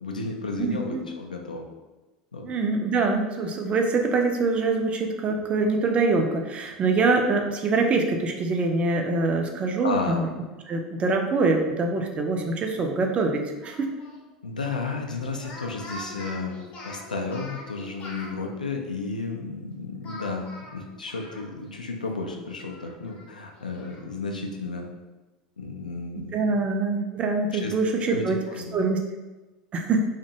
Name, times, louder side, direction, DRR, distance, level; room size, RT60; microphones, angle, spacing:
voice 1, 0.0-1.6 2.3-2.5 9.8-10.2 14.4-20.5 20.7-24.9 25.6-26.6 27.5-27.7 28.1-28.8, left 3 dB, 80° left, 2 dB, 0.3 m, -33 dB
voice 2, 0.6-1.0 2.4-10.3 10.7-13.9 26.3-28.4 28.7-29.0 29.7-30.1, right 3 dB, 30° right, 3 dB, 0.4 m, -24 dB
Speech, 13.6-14.2 15.3-18.3 20.0-21.8 22.1-22.2 22.6-24.0, left 1 dB, 35° left, 0.6 m, -43 dB
2.5 x 2.1 x 2.7 m, 1.2 s
figure-of-eight pair, 80°, 4 cm